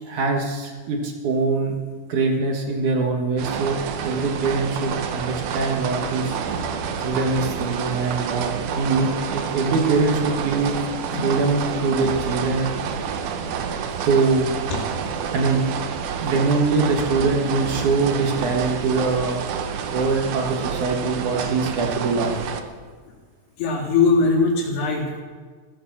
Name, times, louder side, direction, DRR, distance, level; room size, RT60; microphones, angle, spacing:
voice 1, 0.0-1.8 2.1-3.8 4.0-6.4 7.0-10.9 11.2-13.2 14.1-14.5 15.3-15.7 16.2-19.4 19.9-22.4, right 4 dB, 60° right, 1 dB, 2.2 m, -23 dB
sound 1, 3.4-22.6, right 7 dB, 90° right, 1.7 m, -28 dB
voice 2, 14.7-15.3 21.4-21.5 22.6-22.7 23.6-25.2, left 4 dB, 65° left, -1 dB, 4.6 m, -22 dB
15.0 x 11.5 x 7.3 m, 1.5 s
omnidirectional pair, 5.1 m